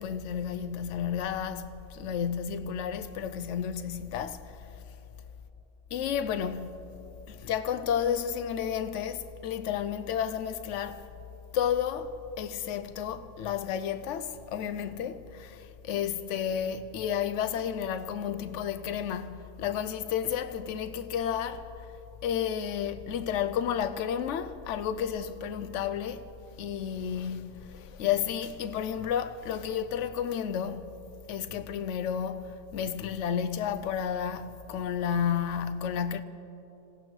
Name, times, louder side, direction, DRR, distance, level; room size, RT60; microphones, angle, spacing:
voice 1, 0.0-4.8 5.9-6.8 7.3-11.1 11.5-21.9 22.2-26.2 26.6-30.9 31.3-36.2, left 8 dB, 90° left, 0.9 m, -32 dB
26.5 x 17.0 x 3.2 m
omnidirectional pair, 1.2 m